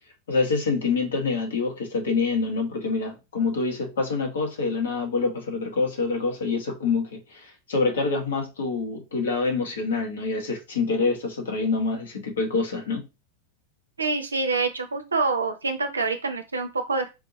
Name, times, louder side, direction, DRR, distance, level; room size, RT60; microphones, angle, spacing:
voice 1, 0.3-13.1, left 4 dB, 65° left, 1.4 m, -26 dB
voice 2, 14.0-17.1, right 4 dB, 75° right, 0.5 m, -26 dB
4.5 x 2.8 x 2.8 m
figure-of-eight pair, 90°, 0 cm